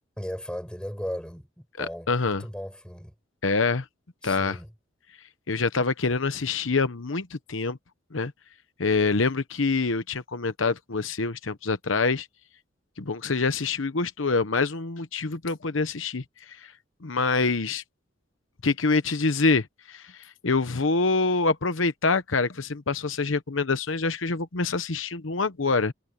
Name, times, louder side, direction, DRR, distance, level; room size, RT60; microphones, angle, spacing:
voice 1, 0.2-3.1 4.2-4.7, equal, 5° left, 7.4 m, -36 dB
voice 2, 1.8-2.4 3.4-3.8 4.2-4.6 5.5-7.8 8.1-8.3 8.8-12.3 13.0-16.7 17.0-17.8 18.6-25.9, left 4 dB, 85° left, 1.0 m, -26 dB
head